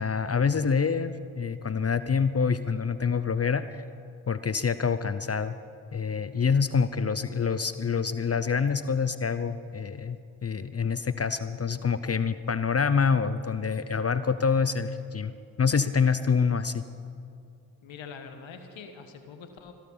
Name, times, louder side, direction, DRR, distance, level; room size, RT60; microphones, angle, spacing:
voice 1, 0.0-3.8 4.3-5.5 5.9-15.3 15.6-16.8, left 5 dB, 30° left, 13 dB, 0.7 m, -26 dB
voice 2, 17.8-19.7, left 5 dB, 80° left, 7 dB, 1.4 m, -44 dB
17.0 x 12.5 x 5.5 m, 2.6 s
supercardioid pair, 45°, 46 cm